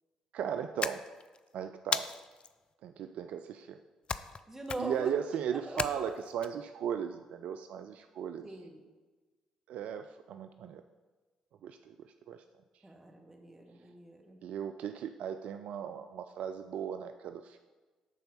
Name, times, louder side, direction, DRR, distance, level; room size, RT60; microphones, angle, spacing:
voice 1, 0.3-1.0 1.5-2.1 2.8-3.8 4.8-8.5 9.7-10.8 11.6-12.4 14.4-17.6, right 8 dB, 60° right, 8 dB, 0.3 m, -37 dB
sound 1, 0.8-1.4 1.9-2.5 4.1-4.4 4.7-5.1 5.8-6.5, left 5 dB, 40° left, 0.4 m, -35 dB
voice 2, 4.5-5.1 5.5-6.0 8.4-8.8 12.8-14.4, right 1 dB, 15° right, 1 dB, 1.9 m, -42 dB
11.0 x 4.4 x 5.5 m, 1.3 s
figure-of-eight pair, 45°, 3 cm